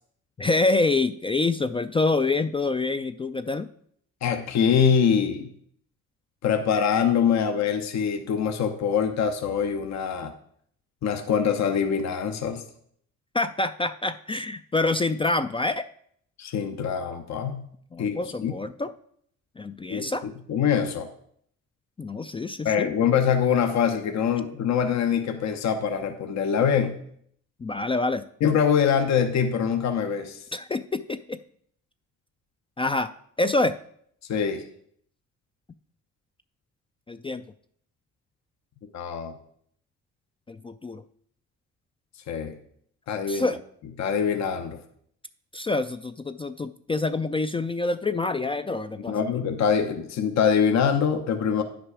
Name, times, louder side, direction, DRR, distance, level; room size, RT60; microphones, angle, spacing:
voice 1, 0.4-3.7 13.3-15.9 17.9-18.9 19.6-20.2 22.0-22.9 27.6-28.2 30.5-31.4 32.8-33.8 37.1-37.4 40.5-41.0 43.3-43.6 45.5-49.2, left 3 dB, 20° left, 10 dB, 0.3 m, -26 dB
voice 2, 4.2-5.5 6.4-10.3 11.0-12.6 16.4-17.7 18.0-18.5 19.9-20.1 20.5-21.1 22.6-27.0 28.4-30.4 34.3-34.6 38.9-39.4 42.3-42.6 43.1-43.5 44.0-44.8 49.1-51.6, left 7 dB, 60° left, 6 dB, 0.9 m, -24 dB
9.7 x 6.1 x 4.8 m, 0.66 s
cardioid pair, 90°, 30 cm